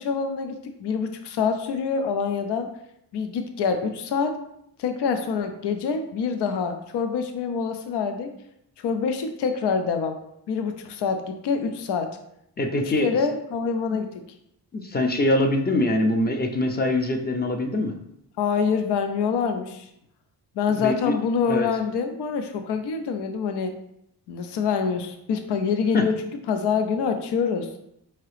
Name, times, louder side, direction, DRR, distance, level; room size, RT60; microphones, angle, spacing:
voice 1, 0.0-2.7 3.1-4.4 4.8-8.3 8.8-10.2 10.5-12.2 12.7-14.2 18.4-19.9 20.6-23.7 24.3-26.2 26.5-27.7, left 6 dB, 80° left, 7 dB, 0.5 m, -26 dB
voice 2, 12.6-13.1 13.9-14.0 14.7-17.9 20.7-21.2 21.5-21.7 25.9-26.0, left 1 dB, 25° left, 4 dB, 0.4 m, -23 dB
4.8 x 2.9 x 3.1 m, 0.77 s
cardioid pair, 100°, 41 cm